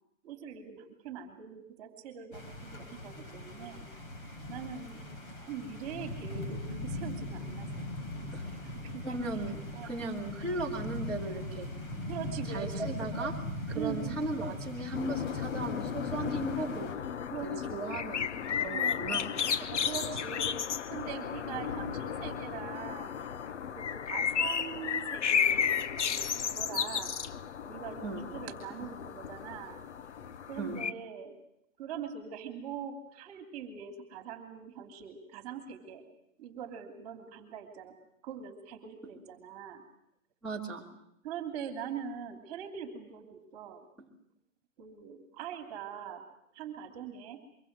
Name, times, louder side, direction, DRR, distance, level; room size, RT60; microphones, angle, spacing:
voice 1, 0.2-3.9 4.5-5.0 5.4-7.9 8.5-9.2 9.7-10.0 12.1-13.0 13.7-14.3 17.3-18.2 18.7-23.2 23.7-27.2 27.6-29.8 30.5-31.4 31.8-36.0 36.4-38.0 38.2-39.8 41.2-43.9 44.8-46.2 46.5-47.4, right 7 dB, 30° right, 6 dB, 3.1 m, -42 dB
sound 1, 2.3-16.9, left 1 dB, 40° left, 5.1 m, -40 dB
voice 2, 9.0-11.7 12.5-13.4 13.7-16.9 17.4-19.2 19.6-19.7 28.0-28.3 30.6-30.9 40.4-40.8, right 2 dB, ahead, -3 dB, 2.9 m, -37 dB
sound 2, 14.9-30.9, left 8 dB, 60° left, 1.0 m, -33 dB
25.0 x 24.0 x 7.5 m, 0.76 s
hypercardioid pair, 160°, 40 cm